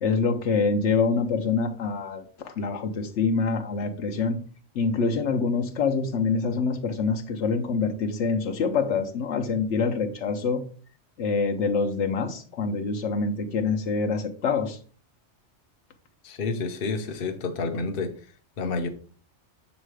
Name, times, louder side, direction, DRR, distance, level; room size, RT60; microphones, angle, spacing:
voice 1, 0.0-4.4 4.8-10.6 11.2-14.8, left 4 dB, 75° left, 5 dB, 1.0 m, -25 dB
voice 2, 16.2-18.1 18.6-18.9, left 4 dB, 55° left, 6 dB, 0.9 m, -29 dB
6.5 x 3.1 x 4.7 m, 0.41 s
omnidirectional pair, 1.2 m